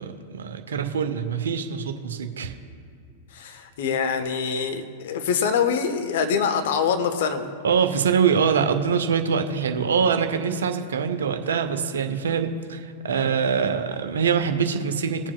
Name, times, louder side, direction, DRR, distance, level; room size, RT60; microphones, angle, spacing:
voice 1, 0.0-2.5 7.6-15.3, right 6 dB, 65° right, 7 dB, 0.7 m, -24 dB
voice 2, 3.3-7.5, left 6 dB, 55° left, 6 dB, 0.9 m, -24 dB
19.0 x 7.3 x 2.3 m, 2.4 s
figure-of-eight pair, 95°, 0 cm